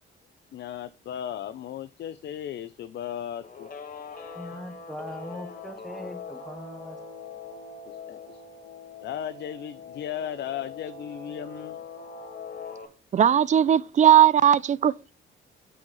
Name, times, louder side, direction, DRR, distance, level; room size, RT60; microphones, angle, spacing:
voice 1, 0.5-3.7 7.9-8.4 9.0-11.8, left 10 dB, 60° left, 0.5 m, -36 dB
Guitar, 3.4-12.9, left 4 dB, 45° left, 1.5 m, -42 dB
voice 2, 4.3-7.0, equal, ahead, 0.9 m, -40 dB
voice 3, 13.1-15.1, right 10 dB, 40° right, 0.4 m, -18 dB
9.3 x 5.0 x 3.0 m
cardioid pair, 90°, 20 cm